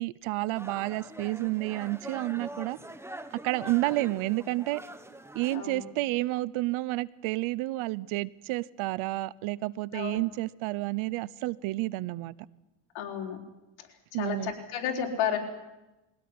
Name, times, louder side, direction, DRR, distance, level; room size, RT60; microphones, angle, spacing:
voice 1, 0.0-2.8 3.4-4.8 5.3-12.3 14.1-14.5, right 19 dB, 85° right, 0.9 m, -30 dB
sound 1, 0.5-5.6, right 1 dB, 5° right, 1.4 m, -44 dB
voice 2, 5.5-5.8 9.9-10.2 12.9-13.4 13.8-13.9 14.1-15.4, left 8 dB, 80° left, 4.3 m, -32 dB
22.0 x 17.0 x 9.7 m
cardioid pair, 115°, 47 cm